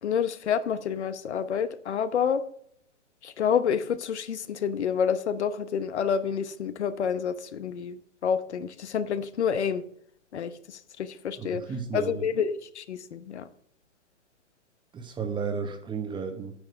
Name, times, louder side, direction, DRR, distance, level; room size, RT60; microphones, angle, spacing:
voice 1, 0.0-2.4 3.2-8.0 8.2-9.8 10.3-11.6 11.9-13.4, left 7 dB, 65° left, 12 dB, 1.0 m, -28 dB
voice 2, 11.4-12.2 14.9-16.5, right 5 dB, 15° right, 7 dB, 1.1 m, -33 dB
9.6 x 7.6 x 4.5 m, 0.66 s
figure-of-eight pair, 115°, 37 cm